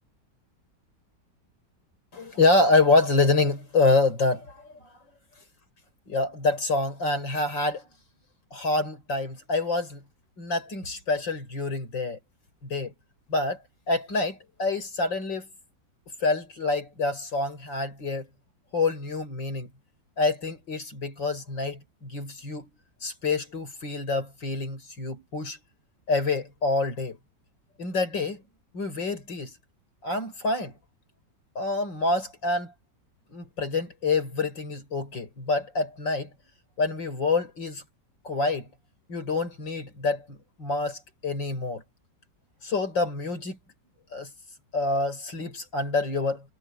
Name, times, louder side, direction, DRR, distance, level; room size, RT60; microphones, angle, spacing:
voice 1, 2.1-4.6 6.1-7.8 8.5-10.0 10.4-12.2 12.6-12.9 13.3-13.6 13.9-15.5 16.2-18.3 18.7-19.7 20.2-22.7 23.0-25.6 26.1-27.2 27.8-28.4 28.7-29.5 30.0-30.7 31.5-32.7 33.3-36.3 36.8-37.8 38.2-38.7 39.1-41.8 42.6-43.6 44.1-44.3 44.7-46.4, left 3 dB, 90° left, 6.7 m, -26 dB
omnidirectional pair, 1.9 m